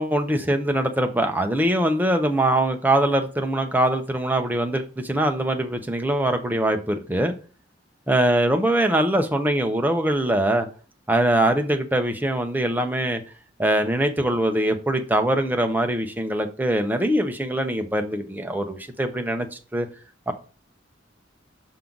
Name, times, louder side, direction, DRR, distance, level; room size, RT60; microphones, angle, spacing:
voice 1, 0.0-7.3 8.1-10.7 11.1-13.2 13.6-19.5 19.7-19.9 20.3-20.4, right 1 dB, 10° right, 5 dB, 0.8 m, -22 dB
5.9 x 5.6 x 3.9 m, 0.36 s
head